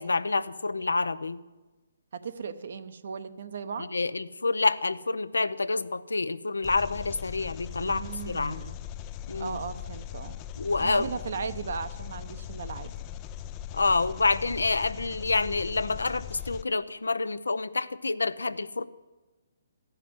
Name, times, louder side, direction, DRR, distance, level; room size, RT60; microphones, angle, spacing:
voice 1, 0.0-1.4 3.9-8.6 9.3-9.6 10.6-11.1 13.7-18.8, left 3 dB, 85° left, 14 dB, 0.6 m, -28 dB
voice 2, 2.1-3.9 7.8-8.8 9.4-10.4 10.8-12.9, right 5 dB, 60° right, 11 dB, 0.8 m, -37 dB
Engine, 6.6-16.6, left 10 dB, 25° left, 0.4 m, -40 dB
14.0 x 5.8 x 9.4 m, 1.2 s
hypercardioid pair, 145°, 0 cm